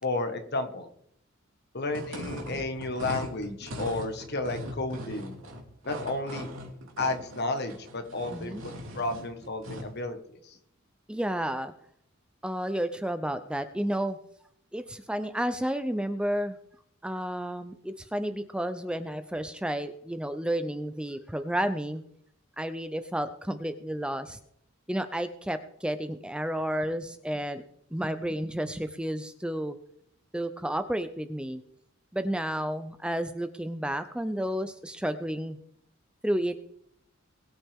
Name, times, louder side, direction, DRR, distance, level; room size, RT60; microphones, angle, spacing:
voice 1, 0.0-0.9 1.7-5.4 5.8-6.5 7.0-10.2 10.4-10.6, left 2 dB, 55° left, 6 dB, 1.6 m, -32 dB
sound 1, 1.9-10.0, equal, 75° right, 3.1 m, -40 dB
voice 2, 8.3-8.6 11.1-11.7 12.4-14.2 14.7-16.6 17.0-22.0 22.6-24.4 24.9-27.6 27.9-29.8 30.3-31.6 32.1-35.6 36.2-36.6, right 1 dB, 5° right, 10 dB, 0.5 m, -31 dB
21.5 x 8.9 x 3.6 m, 0.72 s
head